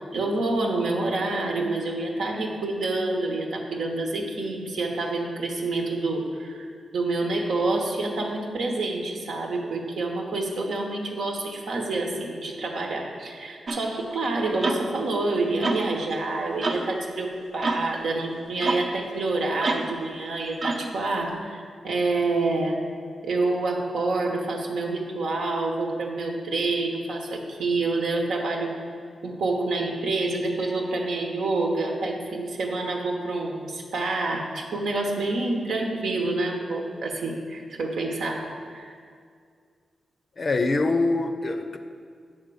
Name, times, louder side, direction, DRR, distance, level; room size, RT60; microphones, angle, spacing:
voice 1, 0.1-6.7 6.9-22.8 23.2-28.7 29.2-38.9, right 2 dB, 90° right, 0 dB, 1.1 m, -27 dB
sound 1, 13.7-13.9 14.6-14.9 15.6-15.9 16.6-16.9 17.6-17.9 18.6-18.9 19.6-20.0 20.6-20.9, right 3 dB, 55° right, 0.7 m, -27 dB
voice 2, 40.4-41.8, left 3 dB, 40° left, 7 dB, 0.5 m, -24 dB
9.0 x 3.6 x 6.8 m, 2.2 s
cardioid pair, 100°, 0 cm